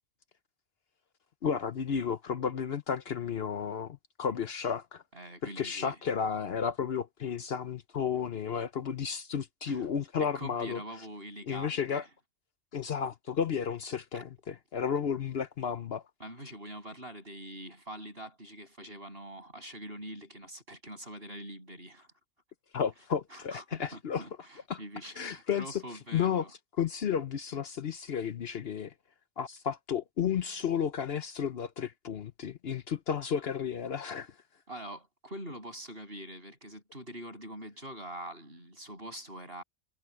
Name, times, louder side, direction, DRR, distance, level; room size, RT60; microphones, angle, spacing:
voice 1, 1.4-5.0 5.6-10.8 11.5-12.0 12.7-16.0 22.7-24.2 24.7-24.8 25.2-25.8 26.1-26.5 26.8-28.9 29.4-34.3, left 7 dB, 60° left, 1.0 m, -32 dB
voice 2, 5.1-6.0 9.7-9.9 10.2-12.1 14.1-14.3 16.2-22.1 23.3-26.5 34.1-34.2 34.7-39.6, equal, 50° right, 7.7 m, -44 dB
omnidirectional pair, 1.3 m